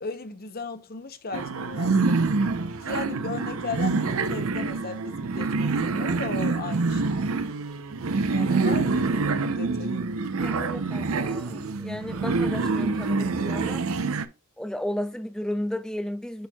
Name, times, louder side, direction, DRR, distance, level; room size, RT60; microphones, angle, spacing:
voice 1, 0.0-2.3 2.8-7.4 8.3-10.1, left 4 dB, 45° left, 0.8 m, -37 dB
sound 1, 1.3-14.2, right 3 dB, 75° right, 0.6 m, -26 dB
voice 2, 10.4-13.9 14.6-16.5, left 1 dB, 5° left, 0.4 m, -33 dB
10.5 x 4.4 x 2.3 m
head